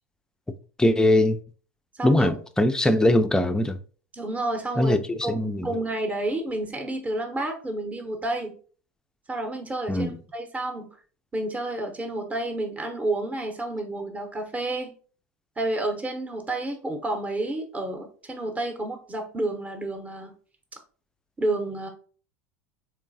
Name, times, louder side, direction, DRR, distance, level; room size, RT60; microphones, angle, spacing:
voice 1, 0.8-1.4 2.0-3.8 4.8-5.7 9.9-10.2, left 1 dB, 10° left, 0.4 m, -21 dB
voice 2, 2.0-2.3 4.1-8.6 9.3-10.9 11.3-14.9 15.6-20.3 21.4-21.9, right 2 dB, 15° right, 0.7 m, -30 dB
3.7 x 3.1 x 2.6 m
hypercardioid pair, 80°, 9 cm